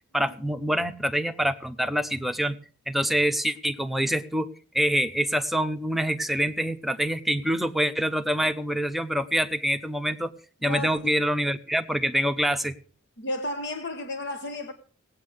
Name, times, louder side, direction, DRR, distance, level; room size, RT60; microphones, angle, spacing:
voice 1, 0.1-2.5 2.9-4.5 4.7-10.3 10.6-12.7, equal, ahead, 0.8 m, -26 dB
voice 2, 10.6-11.1 13.2-14.7, left 1 dB, 55° left, 1.3 m, -33 dB
18.0 x 8.7 x 6.5 m
head